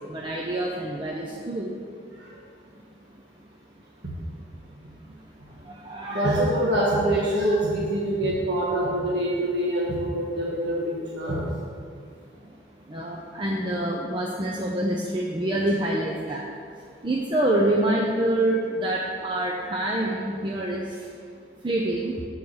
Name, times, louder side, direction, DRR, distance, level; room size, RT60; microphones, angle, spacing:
voice 1, 0.0-1.8 2.1-2.2 2.7-2.8 3.1-3.2 4.3-4.4 5.0-6.2 12.4-12.5 12.9-21.2 21.6-22.3, right 1 dB, 25° right, -2 dB, 0.5 m, -27 dB
voice 2, 6.0-11.5, right 1 dB, 65° right, -7 dB, 1.5 m, -25 dB
7.1 x 4.6 x 6.2 m, 2.3 s
head